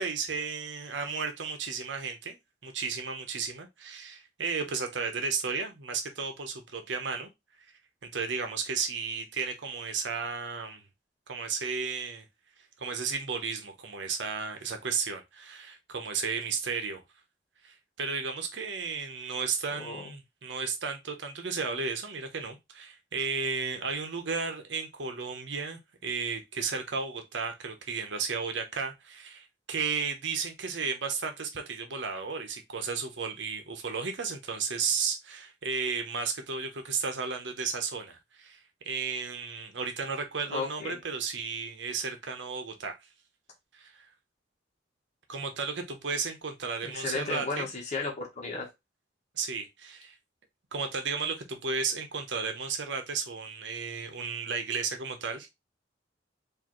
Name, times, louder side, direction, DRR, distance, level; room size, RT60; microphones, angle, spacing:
voice 1, 0.0-2.4 2.6-7.3 8.0-10.8 11.3-12.2 12.8-17.0 17.6-38.6 38.9-42.9 43.7-44.1 45.3-47.7 49.3-50.2 50.7-55.5, right 5 dB, 75° right, 0.9 m, -33 dB
voice 2, 19.7-20.0 40.5-41.0 46.8-48.7, left 4 dB, 40° left, 1.1 m, -34 dB
4.7 x 2.7 x 3.0 m
head